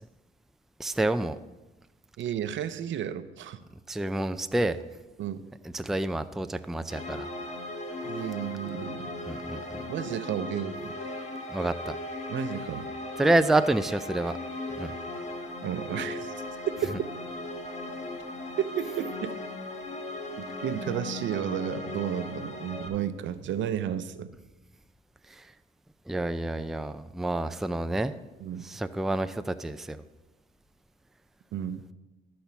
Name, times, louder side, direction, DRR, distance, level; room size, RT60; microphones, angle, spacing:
voice 1, 0.8-1.4 3.9-4.8 5.6-7.3 9.3-9.8 11.5-12.0 13.2-14.4 14.7-14.9 25.3-25.5 26.1-28.1 28.6-30.0, right 2 dB, ahead, 10 dB, 0.4 m, -28 dB
voice 2, 2.2-3.6 5.2-5.4 8.0-9.1 9.9-11.0 12.3-12.9 15.6-16.3 16.7-17.2 18.6-19.3 20.4-24.3 28.4-28.7 31.5-31.8, right 10 dB, 70° right, 11 dB, 0.7 m, -32 dB
sound 1, 6.9-22.9, left 2 dB, 35° left, 1.6 m, -37 dB
12.0 x 4.3 x 6.9 m, 1.1 s
cardioid pair, 90°, 20 cm